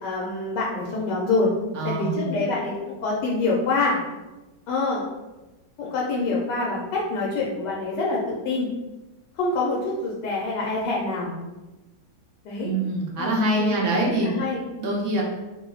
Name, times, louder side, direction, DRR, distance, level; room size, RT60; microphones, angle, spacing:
voice 1, 0.0-1.5 1.8-4.0 4.7-5.0 5.8-8.7 9.4-11.3 12.4-12.7 13.2-14.6, left 3 dB, 85° left, -4 dB, 1.3 m, -26 dB
voice 2, 1.7-2.3 12.6-14.3 14.8-15.2, right 1 dB, 65° right, -2 dB, 0.8 m, -24 dB
3.0 x 2.0 x 3.8 m, 1.1 s
omnidirectional pair, 1.8 m